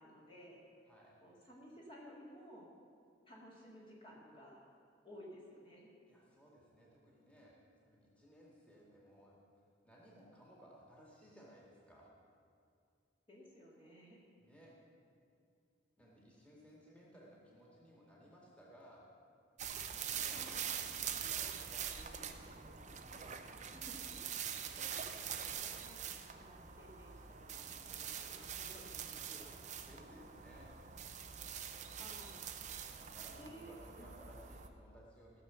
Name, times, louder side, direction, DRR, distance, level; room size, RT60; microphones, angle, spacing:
voice 1, 0.0-0.9 1.2-2.7 3.3-4.6 5.0-5.9 13.3-14.2 20.2-20.6 23.6-24.0 24.8-29.6 32.0-32.4 33.3-34.0, equal, 30° left, -4 dB, 2.0 m, -56 dB
voice 2, 6.1-7.6 7.8-9.4 9.8-12.1 14.4-14.7 16.0-19.1 20.0-23.4 29.9-30.7 32.9-35.4, equal, 5° left, -5 dB, 2.1 m, -60 dB
sound 1, 19.6-34.7, right 8 dB, 40° right, 0.7 m, -44 dB
16.0 x 6.9 x 7.0 m, 2.4 s
head